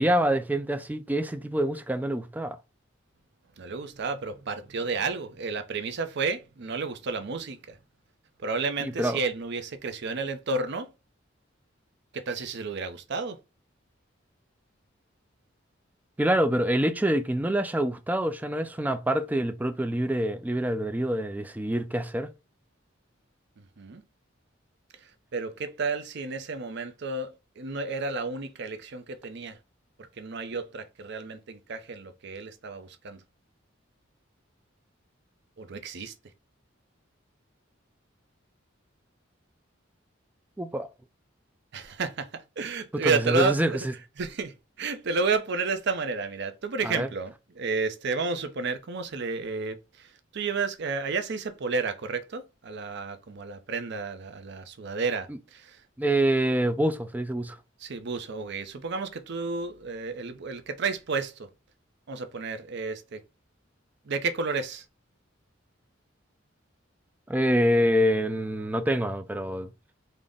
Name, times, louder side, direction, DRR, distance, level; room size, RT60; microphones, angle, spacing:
voice 1, 0.0-2.6 8.8-9.2 16.2-22.3 40.6-40.9 43.0-43.7 46.8-47.1 56.0-57.6 67.3-69.7, right 1 dB, 10° right, 0.4 m, -26 dB
voice 2, 3.6-7.8 8.4-10.9 12.1-13.4 23.6-24.0 25.0-29.6 30.0-33.2 35.6-36.1 41.7-43.9 44.2-55.8 57.8-61.5 62.1-63.2 64.1-64.8, right 4 dB, 60° right, 0.6 m, -31 dB
3.8 x 2.1 x 3.5 m
head